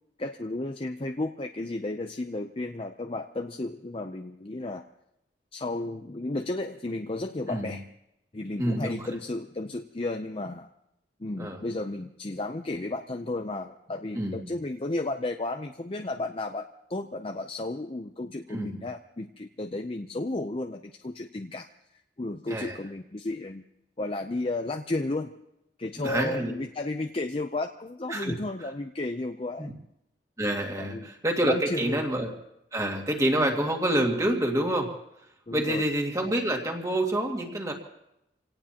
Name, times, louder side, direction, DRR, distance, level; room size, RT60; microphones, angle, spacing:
voice 1, 0.2-4.9 5.5-7.9 8.3-10.7 11.2-23.6 24.0-25.3 25.8-29.7 30.8-31.1 31.4-32.0 33.3-33.5 35.5-35.8, left 2 dB, 30° left, 5 dB, 0.6 m, -33 dB
voice 2, 8.6-9.1 11.4-11.6 14.1-14.5 18.5-18.8 22.5-22.8 26.0-26.5 28.1-28.3 29.6-29.7 30.4-32.3 32.7-34.9 35.5-37.7, right 1 dB, 20° right, 1 dB, 2.2 m, -27 dB
26.5 x 18.0 x 2.9 m, 0.83 s
head